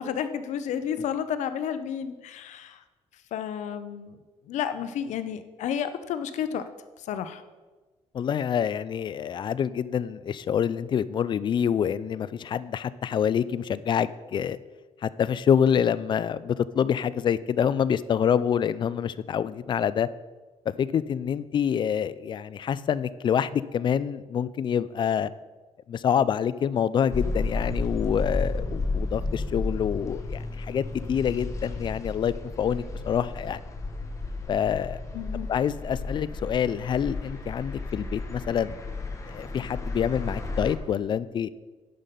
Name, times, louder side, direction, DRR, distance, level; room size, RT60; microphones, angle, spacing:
voice 1, 0.0-2.8 3.3-4.2 4.5-6.6 7.0-7.4 35.1-35.5, left 8 dB, 80° left, 11 dB, 0.7 m, -31 dB
voice 2, 8.1-14.6 15.0-20.1 20.7-25.3 25.9-33.6 34.5-35.0 35.5-38.8 39.3-41.5, left 8 dB, 40° left, 16 dB, 0.4 m, -26 dB
sound 1, 27.1-40.8, left 3 dB, 25° left, 1.2 m, -33 dB
10.5 x 5.8 x 5.2 m, 1.3 s
cardioid pair, 140°, 12 cm